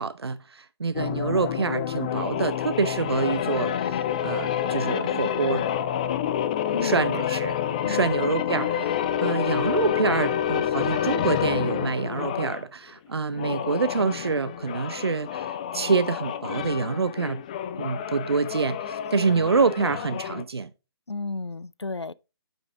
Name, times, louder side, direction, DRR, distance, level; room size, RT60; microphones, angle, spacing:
voice 1, 0.0-5.7 6.8-7.6 7.9-17.4 17.8-20.7, right 4 dB, 70° right, 0.5 m, -26 dB
sound 1, 0.9-12.6 13.3-20.4, left 9 dB, 20° left, 0.3 m, -28 dB
voice 2, 7.8-8.3 21.1-22.1, left 3 dB, 85° left, 0.4 m, -32 dB
8.7 x 5.4 x 3.3 m
figure-of-eight pair, 135°, 14 cm